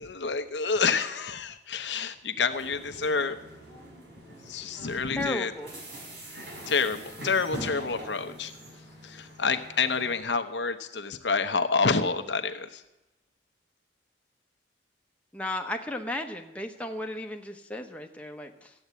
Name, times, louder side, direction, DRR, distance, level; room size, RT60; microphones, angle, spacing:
voice 1, 0.0-3.4 4.5-5.5 6.7-8.5 9.0-12.8, left 5 dB, 85° left, 8 dB, 0.9 m, -28 dB
sound 1, 2.5-10.2, right 1 dB, 85° right, 5.5 m, -44 dB
voice 2, 5.0-5.7 15.3-18.7, left 1 dB, 5° left, 3 dB, 1.0 m, -35 dB
14.0 x 8.7 x 8.2 m, 0.96 s
head